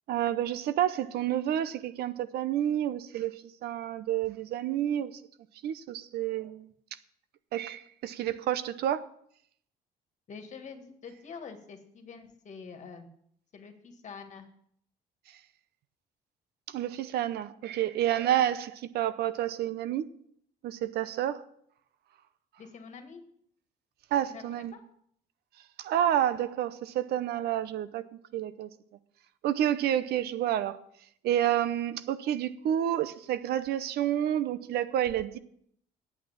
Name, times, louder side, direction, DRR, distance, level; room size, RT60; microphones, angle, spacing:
voice 1, 0.1-5.2 5.6-6.7 7.5-9.1 15.3-15.4 16.7-20.1 20.6-21.4 24.1-24.7 25.8-28.0 28.3-28.7 29.4-30.8 31.2-35.4, right 11 dB, 70° right, 0.7 m, -29 dB
voice 2, 10.3-13.1 13.5-14.5 22.6-23.2 24.2-24.8, left 5 dB, 45° left, 1.9 m, -46 dB
8.7 x 8.4 x 7.1 m
cardioid pair, 110°, 17 cm